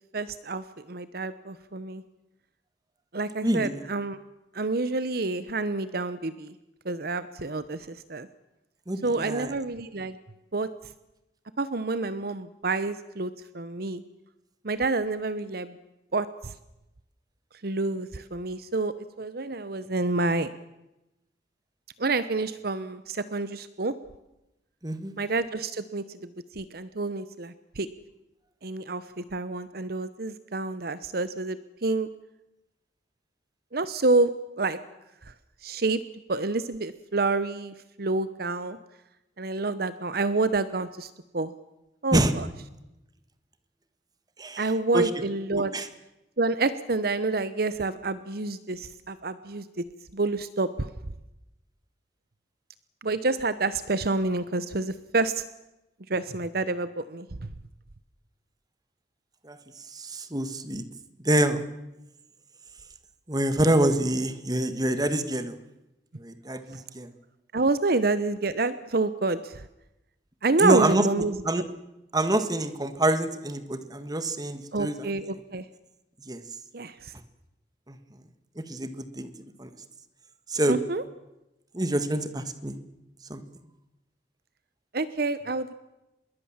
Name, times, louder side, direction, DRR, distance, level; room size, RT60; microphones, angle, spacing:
voice 1, 0.1-2.0 3.1-4.2 4.5-6.5 6.8-8.3 9.0-10.2 10.5-10.7 11.6-14.0 14.6-15.8 16.1-16.5 17.6-20.5 22.0-23.9 25.2-26.2 26.5-27.9 28.6-32.1 33.7-34.8 35.3-35.4 35.6-36.0 36.3-38.8 39.4-41.5 42.0-42.5 44.6-45.7 46.4-49.8 50.1-50.9 53.0-55.4 56.1-57.5 67.5-69.6 70.4-71.4 74.7-75.6 76.7-77.1 80.7-81.0 84.9-85.7, right 3 dB, 55° right, 14 dB, 0.9 m, -28 dB
voice 2, 3.4-3.8 8.9-9.5 24.8-25.1 42.1-42.3 44.4-44.7 44.9-45.1 45.7-45.9 59.4-59.6 59.9-60.8 61.2-61.6 63.3-65.6 66.2-67.1 70.6-71.0 71.4-71.6 72.1-75.1 76.2-76.4 77.9-78.0 78.6-79.3 79.6-79.7 80.5-80.8 81.7-82.8 83.3-83.4, right 1 dB, 20° right, 10 dB, 1.7 m, -26 dB
26.5 x 21.5 x 7.4 m, 0.95 s
head